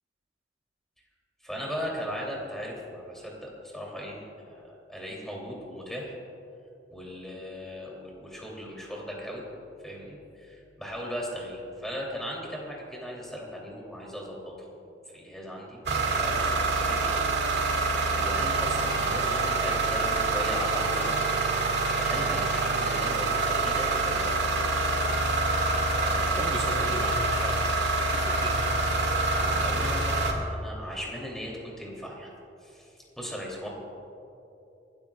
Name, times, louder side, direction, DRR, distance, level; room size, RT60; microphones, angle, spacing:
voice 1, 1.4-6.2 6.9-9.4 9.8-14.8 15.1-17.2 17.5-21.2 21.9-24.3 25.9-27.0 29.3-32.3 32.6-33.7, equal, ahead, -3 dB, 3.0 m, -38 dB
sound 1, 15.9-30.3, right 3 dB, 65° right, 2.2 m, -26 dB
voice 2, 26.4-27.8 28.1-28.7, right 2 dB, 30° right, 2 dB, 1.3 m, -37 dB
29.5 x 13.5 x 2.4 m, 2.8 s
head